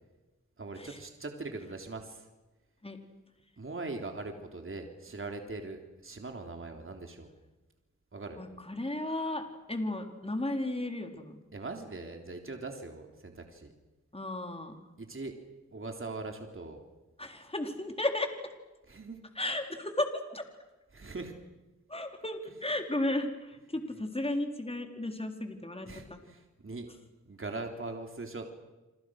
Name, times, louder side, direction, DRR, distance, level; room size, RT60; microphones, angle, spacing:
voice 1, 0.6-2.3 3.6-7.3 8.1-8.4 11.5-13.7 15.0-15.3 15.7-16.8 18.9-19.2 20.9-21.3 25.9-26.9 27.3-28.5, right 3 dB, 45° right, 4 dB, 3.5 m, -41 dB
voice 2, 8.4-11.4 14.1-14.8 17.2-18.3 19.4-20.5 21.9-26.2, left 1 dB, 20° left, 4 dB, 4.1 m, -34 dB
28.5 x 25.5 x 6.5 m, 1.1 s
cardioid pair, 50°, 29 cm